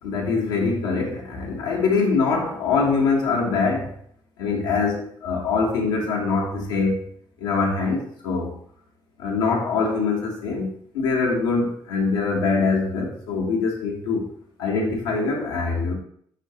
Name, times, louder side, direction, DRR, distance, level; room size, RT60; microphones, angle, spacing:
voice 1, 0.0-3.9 4.4-7.0 7.4-8.5 9.2-14.2 14.6-15.9, left 4 dB, 85° left, -2 dB, 0.9 m, -23 dB
4.6 x 4.2 x 2.7 m, 0.64 s
hypercardioid pair, 45°, 12 cm